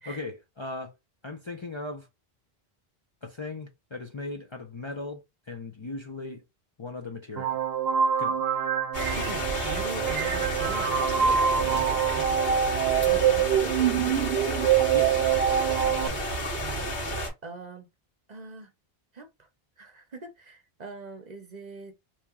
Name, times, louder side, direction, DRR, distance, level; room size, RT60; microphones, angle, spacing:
voice 1, 0.1-0.9 1.2-2.1 3.2-6.4 6.8-7.6 8.2-8.4 14.9-15.2, left 3 dB, 35° left, 0.5 m, -38 dB
sound 1, 7.4-16.1, right 8 dB, 80° right, 0.8 m, -25 dB
sound 2, 8.9-17.3, equal, 70° left, 1.8 m, -31 dB
voice 2, 9.1-14.4 15.9-16.2 16.6-16.9 17.4-17.9 18.3-18.7 19.1-19.5 19.8-22.0, right 4 dB, 50° right, 0.8 m, -42 dB
3.1 x 2.8 x 3.5 m
omnidirectional pair, 1.0 m